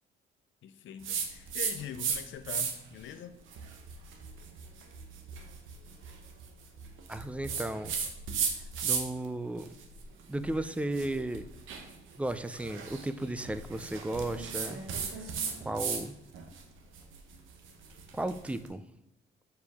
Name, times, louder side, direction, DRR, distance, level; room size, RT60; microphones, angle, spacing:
voice 1, 0.6-3.4, left 9 dB, 70° left, 10 dB, 0.6 m, -43 dB
sound 1, 1.0-2.2 2.4-3.0 3.5-9.3 9.6-16.0 16.3-18.5, right 6 dB, 85° right, 0.9 m, -36 dB
voice 2, 7.1-8.0 8.8-9.7 10.3-11.5 12.2-14.8 15.1-15.2 15.6-16.1 18.1-18.8, right 1 dB, 5° right, 12 dB, 0.4 m, -34 dB
6.9 x 4.7 x 3.5 m, 0.86 s
cardioid pair, 90°, 20 cm